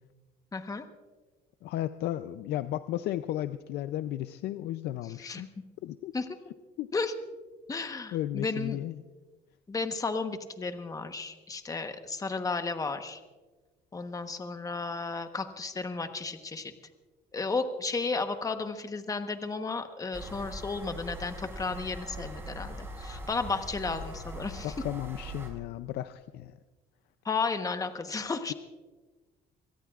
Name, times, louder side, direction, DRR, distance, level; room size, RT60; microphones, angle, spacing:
voice 1, 0.5-0.9 5.2-5.4 6.1-6.3 6.9-7.1 7.7-8.8 9.7-13.2 13.9-16.7 17.3-24.7 27.2-28.5, left 4 dB, 20° left, 8 dB, 1.1 m, -33 dB
voice 2, 1.6-5.5 5.8-6.1 6.8-6.9 8.1-9.0 24.6-26.5, left 13 dB, 75° left, 12 dB, 0.5 m, -34 dB
sound 1, 20.1-25.5, right 1 dB, 15° right, 5.0 m, -41 dB
24.5 x 17.5 x 2.4 m, 1.3 s
cardioid pair, 110°, 17 cm